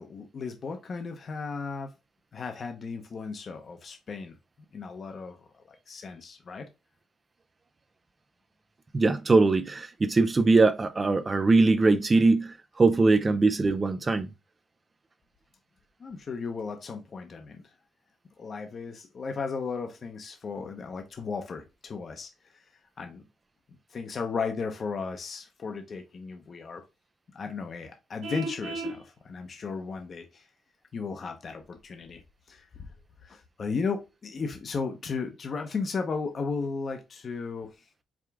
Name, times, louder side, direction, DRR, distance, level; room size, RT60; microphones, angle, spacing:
voice 1, 0.0-1.9 2.3-4.3 4.7-6.7 16.0-17.7 18.4-22.6 23.0-23.2 23.9-26.8 27.3-30.5 30.9-32.2 32.5-32.9 33.2-37.7, left 4 dB, 45° left, 0.7 m, -35 dB
voice 2, 8.9-14.3, right 3 dB, 30° right, 0.3 m, -22 dB
Vehicle horn car horn honking, 28.2-29.0, right 2 dB, 70° right, 1.1 m, -34 dB
4.8 x 2.4 x 3.4 m
cardioid pair, 90°, 0 cm